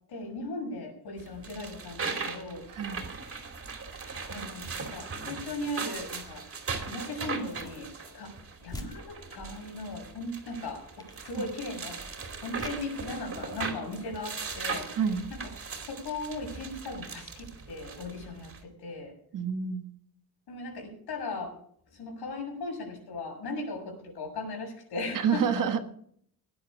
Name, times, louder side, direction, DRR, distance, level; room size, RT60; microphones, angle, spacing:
voice 1, 0.1-2.6 4.0-6.4 6.8-8.3 8.6-12.0 12.4-15.0 15.3-15.5 15.9-19.1 20.5-21.5 21.9-25.7, left 2 dB, 80° left, 7.0 m, -38 dB
sound 1, 1.2-18.6, right 4 dB, 35° right, 2.8 m, -39 dB
voice 2, 2.7-3.1 11.3-11.5 14.9-15.2 19.3-19.9 25.1-25.8, right 7 dB, 55° right, 1.7 m, -28 dB
sound 2, 7.4-7.9 8.3-8.4 8.7-9.6 10.5-10.7 11.0-11.6 12.5-13.0 13.4-13.6, left 1 dB, 10° left, 1.9 m, -46 dB
17.5 x 11.0 x 5.1 m
cardioid pair, 160°, 39 cm